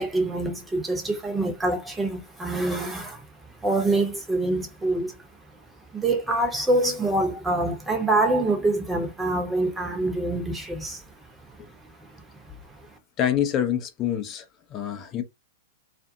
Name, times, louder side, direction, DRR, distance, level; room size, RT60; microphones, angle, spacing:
voice 1, 0.0-3.2 3.6-5.2 5.9-11.0 12.4-12.5, right 2 dB, 10° right, 0.9 m, -25 dB
voice 2, 13.2-15.2, left 10 dB, 35° left, 0.6 m, -26 dB
2.5 x 2.4 x 2.6 m
figure-of-eight pair, 105°, 0 cm